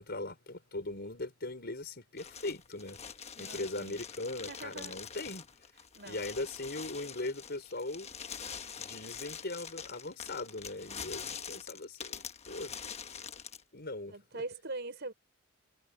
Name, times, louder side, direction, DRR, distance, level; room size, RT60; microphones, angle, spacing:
voice 1, 0.0-3.0 3.4-5.5 6.1-8.1 8.5-12.7 13.7-14.1, left 2 dB, 50° left, 4.8 m, -40 dB
sound 1, 2.2-13.6, left 7 dB, 30° left, 1.2 m, -45 dB
voice 2, 3.3-4.0 4.5-5.0 6.0-6.3 14.1-15.1, right 2 dB, 55° right, 5.7 m, -42 dB
head